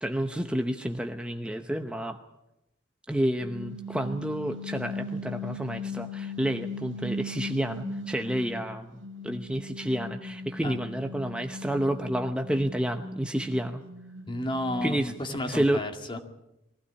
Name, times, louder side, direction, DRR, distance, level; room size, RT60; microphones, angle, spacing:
voice 1, 0.0-2.2 3.1-13.8 14.8-15.1 15.5-15.8, right 1 dB, 5° right, 6 dB, 0.8 m, -30 dB
sound 1, 3.4-8.6 9.0-15.2, left 2 dB, 80° right, 2.1 m, -38 dB
voice 2, 14.3-16.2, left 1 dB, 25° left, 5 dB, 2.2 m, -32 dB
22.5 x 15.5 x 10.0 m, 0.90 s
head